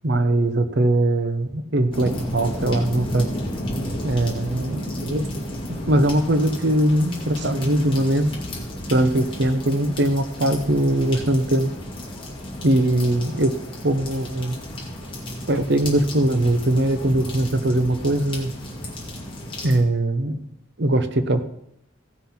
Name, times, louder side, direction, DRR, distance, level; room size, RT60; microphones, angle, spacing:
voice 1, 0.0-3.3 4.0-5.3 5.7-8.3 8.9-11.7 12.6-13.5 13.8-14.6 15.5-18.5 19.6-20.4 20.8-21.4, right 1 dB, 55° right, 9 dB, 0.9 m, -21 dB
sound 1, 1.9-19.8, equal, 25° left, 2.4 m, -32 dB
15.5 x 5.8 x 5.8 m, 0.79 s
head